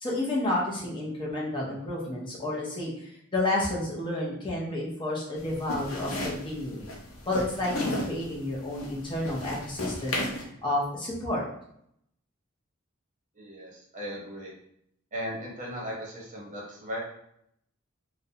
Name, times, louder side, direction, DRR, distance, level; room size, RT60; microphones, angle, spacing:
voice 1, 0.0-6.9 7.3-10.2 10.6-11.4, left 1 dB, 25° left, -4 dB, 0.5 m, -30 dB
sound 1, 5.4-10.4, left 1 dB, 80° left, 0.6 m, -34 dB
voice 2, 13.4-14.5 15.1-17.0, equal, 40° right, -3 dB, 0.7 m, -37 dB
2.4 x 2.0 x 2.6 m, 0.73 s
head